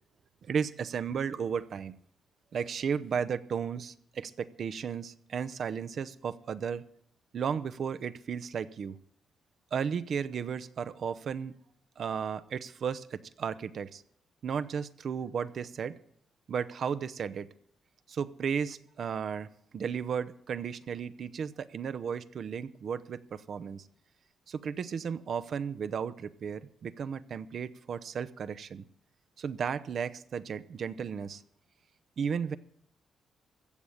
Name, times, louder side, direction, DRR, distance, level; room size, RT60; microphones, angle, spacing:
voice 1, 0.4-2.0 2.5-6.8 7.3-9.0 9.7-11.6 12.0-14.0 14.4-16.0 16.5-17.5 18.1-19.5 19.7-23.8 24.5-28.8 29.4-31.4 32.2-32.6, right 7 dB, 60° right, 13 dB, 0.7 m, -34 dB
15.5 x 7.1 x 9.8 m, 0.66 s
cardioid pair, 70°, 0 cm